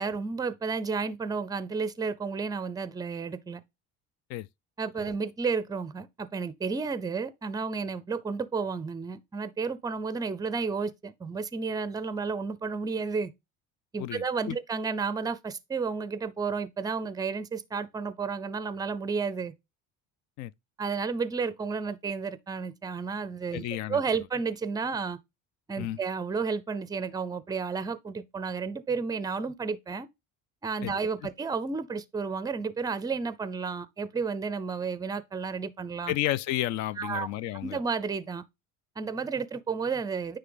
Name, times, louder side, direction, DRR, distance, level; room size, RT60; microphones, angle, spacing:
voice 1, 0.0-3.6 4.8-13.3 13.9-19.5 20.8-23.6 23.9-25.2 25.7-30.1 30.6-36.1 37.0-37.3 37.6-38.4 39.0-40.4, right 5 dB, 10° right, 0.5 m, -32 dB
voice 2, 14.0-14.6 20.4-20.5 23.5-24.0 25.8-26.0 30.8-30.9 36.1-37.8, left 14 dB, 60° left, 0.4 m, -32 dB
9.4 x 3.3 x 3.8 m
cardioid pair, 145°, 32 cm